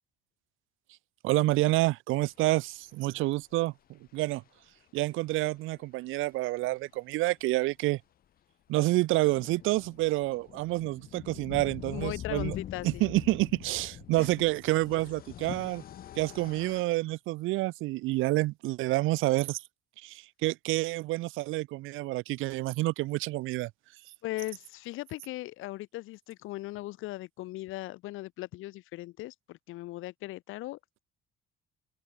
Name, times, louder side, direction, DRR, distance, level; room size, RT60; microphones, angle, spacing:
voice 1, 1.2-4.4 4.9-8.0 8.7-12.6 12.8-15.8 16.2-19.6 20.0-23.7, right 19 dB, 75° right, 0.6 m, -28 dB
sound 1, 4.1-4.2 5.4-5.5 5.8-5.9 6.1-6.2 8.7-16.8, left 11 dB, 45° left, 1.6 m, -44 dB
voice 2, 11.9-13.0 14.2-14.3 15.5-15.6 24.2-31.0, left 17 dB, 75° left, 1.6 m, -39 dB
cardioid pair, 165°, 21 cm